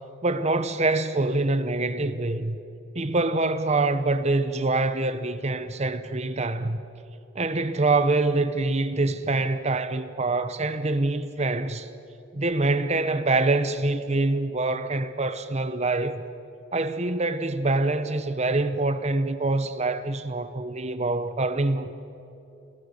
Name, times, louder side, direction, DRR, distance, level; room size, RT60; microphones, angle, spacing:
voice 1, 0.2-2.6 2.9-6.8 7.3-11.9 12.3-16.2 16.7-21.9, right 2 dB, 35° right, 1.0 m, -25 dB
28.5 x 17.0 x 6.7 m
head